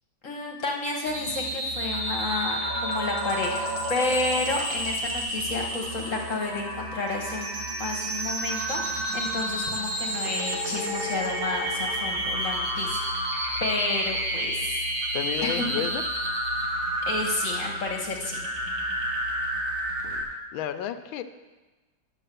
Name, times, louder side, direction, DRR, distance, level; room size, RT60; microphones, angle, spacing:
voice 1, 0.2-7.5 7.8-14.8 15.4-15.7 17.0-18.4, left 3 dB, 45° left, 1 dB, 1.3 m, -31 dB
sound 1, 1.1-20.2, right 1 dB, 85° right, 3.0 m, -30 dB
voice 2, 15.1-16.0 20.0-20.2 20.5-21.2, left 10 dB, 85° left, 10 dB, 1.4 m, -31 dB
10.0 x 7.0 x 6.7 m, 1.2 s
omnidirectional pair, 2.1 m